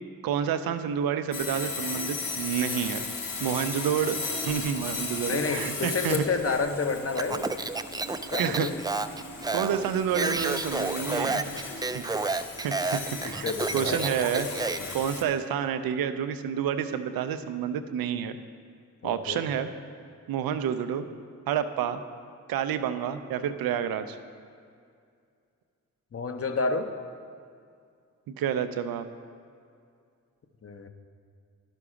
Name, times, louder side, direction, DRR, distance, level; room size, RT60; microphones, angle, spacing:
voice 1, 0.2-3.1 3.4-6.2 8.4-8.7 9.5-11.4 11.9-12.0 12.6-13.5 13.7-14.5 14.9-18.4 19.0-19.7 20.3-21.1 21.5-22.0 22.5-24.2 28.3-29.1, right 8 dB, 90° right, 10 dB, 0.5 m, -29 dB
Sawing, 1.3-15.2, left 4 dB, 70° left, 1.0 m, -36 dB
voice 2, 5.3-7.5 8.3-8.7 11.3-11.8 13.2-14.0 14.8-15.0 19.0-19.4 26.1-26.9 30.6-30.9, left 4 dB, 40° left, 7 dB, 0.8 m, -30 dB
Speech, 7.1-14.9, right 3 dB, 10° right, 0.3 m, -30 dB
11.0 x 6.0 x 4.9 m, 2.3 s
supercardioid pair, 40°, 34 cm